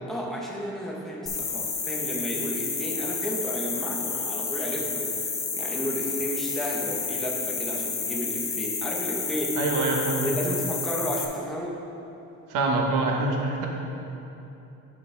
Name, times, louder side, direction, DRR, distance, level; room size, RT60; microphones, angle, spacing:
voice 1, 0.1-9.6 10.2-11.8, equal, ahead, -3 dB, 1.0 m, -33 dB
sound 1, 1.3-11.3, left 5 dB, 30° left, 0.8 m, -30 dB
voice 2, 9.6-10.3 12.5-13.7, right 3 dB, 85° right, 0 dB, 1.2 m, -25 dB
11.0 x 5.4 x 3.4 m, 3.0 s
cardioid pair, 140°, 31 cm